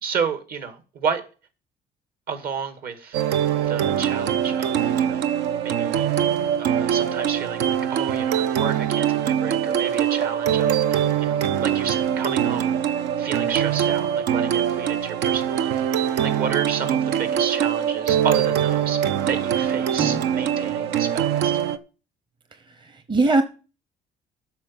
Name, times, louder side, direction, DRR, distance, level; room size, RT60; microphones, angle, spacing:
voice 1, 0.0-1.2 2.3-3.2 3.6-5.3 5.6-6.1 6.6-21.6, right 6 dB, 60° right, 2.0 m, -31 dB
sound 1, 3.1-21.8, right 9 dB, 85° right, 0.8 m, -23 dB
voice 2, 22.5-23.4, right 2 dB, 30° right, 0.9 m, -22 dB
8.5 x 6.0 x 7.4 m
cardioid pair, 110°, 17 cm